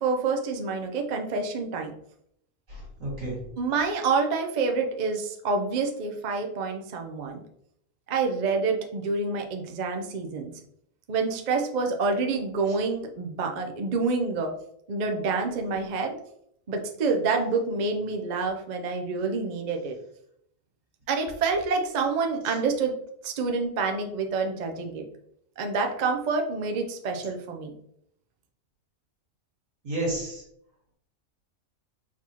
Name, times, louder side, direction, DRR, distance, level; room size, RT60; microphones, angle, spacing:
voice 1, 0.0-1.9 3.6-7.4 8.1-10.5 11.1-14.5 14.9-16.2 16.7-20.0 21.1-23.0 23.2-25.0 25.6-27.7, right 4 dB, 50° right, 3 dB, 0.5 m, -27 dB
voice 2, 2.7-3.4 29.8-30.4, right 1 dB, 75° right, -4 dB, 2.3 m, -31 dB
4.4 x 4.1 x 2.8 m, 0.72 s
omnidirectional pair, 1.4 m